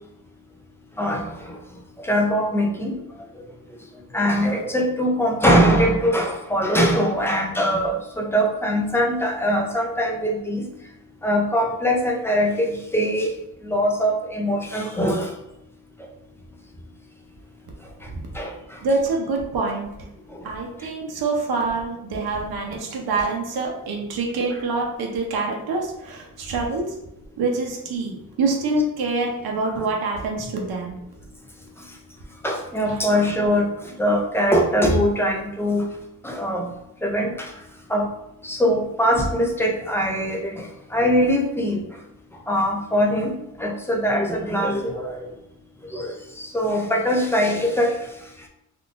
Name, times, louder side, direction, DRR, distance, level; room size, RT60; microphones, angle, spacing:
voice 1, 1.0-1.6 2.0-3.0 4.1-10.7 11.2-13.3 13.6-15.3 18.3-18.6 20.3-20.4 24.5-24.6 29.7-29.9 32.4-35.9 36.2-36.7 37.0-37.5 37.9-38.1 38.4-41.8 42.5-45.3 45.9-48.0, equal, 5° left, 0 dB, 0.3 m, -22 dB
voice 2, 18.8-19.9 20.4-26.9 27.4-31.0 32.9-33.0, right 3 dB, 85° right, 0 dB, 0.7 m, -25 dB
3.6 x 2.4 x 2.4 m, 0.86 s
wide cardioid pair, 155°, 36 cm